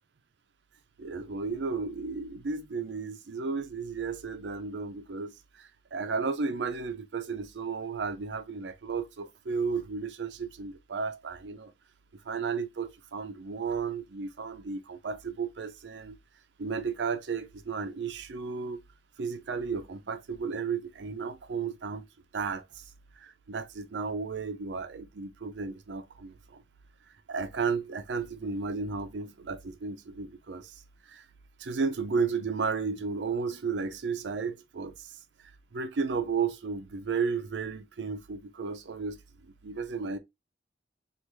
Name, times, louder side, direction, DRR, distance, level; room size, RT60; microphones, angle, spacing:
voice 1, 1.0-11.7 12.3-16.2 16.6-18.8 19.2-22.1 22.3-22.8 23.2-26.6 27.3-30.8 31.1-31.3 31.6-35.2 35.7-40.2, right 5 dB, 85° right, 0.5 m, -33 dB
3.3 x 2.4 x 3.0 m
head